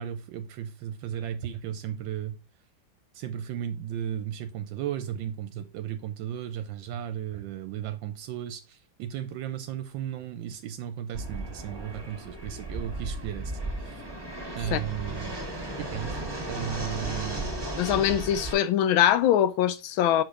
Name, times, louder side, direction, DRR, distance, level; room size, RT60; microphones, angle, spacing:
voice 1, 0.0-2.4 3.1-14.1 14.5-15.4 15.8-16.2 16.5-17.5, right 10 dB, 80° right, 1.3 m, -35 dB
Fixed-wing aircraft airplane, 11.1-18.5, right 1 dB, 15° right, 1.3 m, -35 dB
voice 2, 17.8-20.2, left 11 dB, 85° left, 1.4 m, -23 dB
5.7 x 5.1 x 3.6 m
omnidirectional pair, 2.2 m